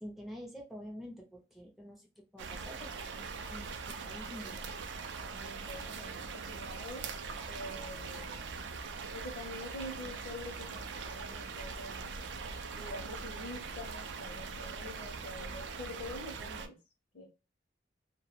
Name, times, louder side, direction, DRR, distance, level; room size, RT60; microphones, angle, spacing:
voice 1, 0.0-4.6, equal, ahead, 0 dB, 0.4 m, -48 dB
sound 1, 2.4-16.7, right 4 dB, 80° right, 0.4 m, -42 dB
voice 2, 5.3-7.1 7.5-8.6 9.0-12.2 12.7-16.8 17.1-17.3, left 1 dB, 50° left, -1 dB, 0.5 m, -46 dB
2.1 x 2.0 x 2.8 m, 0.30 s
head